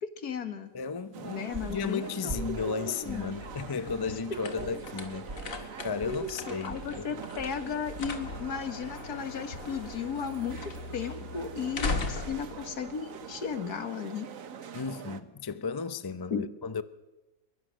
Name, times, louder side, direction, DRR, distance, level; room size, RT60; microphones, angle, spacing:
voice 1, 0.0-0.7 1.3-3.3 4.3-4.7 6.0-14.3 16.3-16.5, left 6 dB, 75° left, 2.1 m, -35 dB
voice 2, 0.7-5.3 5.5-7.2 14.7-16.8, left 5 dB, 30° left, 0.4 m, -34 dB
sound 1, 1.0-11.1, right 1 dB, 40° right, 8.2 m, -46 dB
sound 2, 1.1-15.2, right 7 dB, 60° right, 1.4 m, -44 dB
sound 3, 3.1-13.8, left 3 dB, 60° left, 2.2 m, -40 dB
22.5 x 22.0 x 6.4 m
omnidirectional pair, 1.6 m